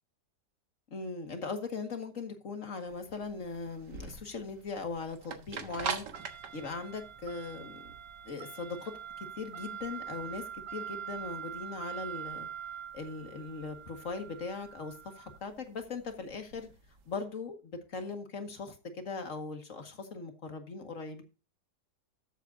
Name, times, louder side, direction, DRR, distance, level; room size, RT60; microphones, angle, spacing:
voice 1, 0.9-6.1 6.5-7.9 8.3-8.9 9.2-10.4 10.7-12.5 12.9-16.7 17.1-21.2, left 4 dB, 50° left, 6 dB, 2.1 m, -39 dB
sound 1, 2.9-17.0, right 7 dB, 90° right, 2.0 m, -42 dB
13.0 x 8.0 x 2.7 m, 0.32 s
omnidirectional pair, 1.8 m